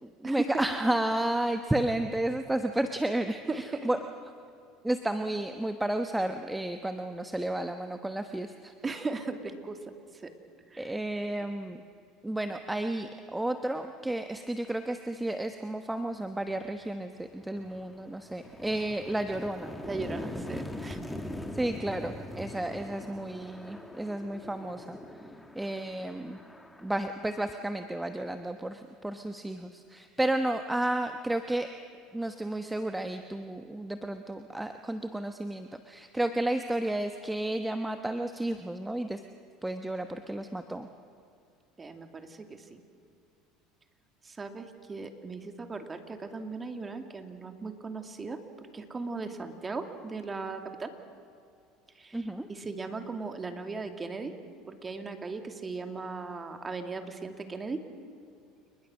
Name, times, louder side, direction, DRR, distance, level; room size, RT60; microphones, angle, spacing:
voice 1, 0.0-4.0 4.8-8.7 10.8-11.8 12.2-19.7 21.5-25.0 25.6-26.4 26.8-31.7 32.1-39.2 39.6-40.9 52.1-52.5, right 1 dB, 10° right, 7 dB, 1.1 m, -32 dB
voice 2, 3.5-3.9 8.8-9.8 10.2-10.3 10.7-10.9 19.8-21.0 41.8-42.8 44.2-48.4 48.7-50.9 52.0-54.3 54.7-57.8, right 4 dB, 25° right, 6 dB, 2.5 m, -37 dB
sound 1, 16.6-16.8 17.2-28.0, left 1 dB, 5° left, 2.0 m, -42 dB
29.0 x 20.5 x 6.4 m, 2.5 s
hypercardioid pair, 85°, 0 cm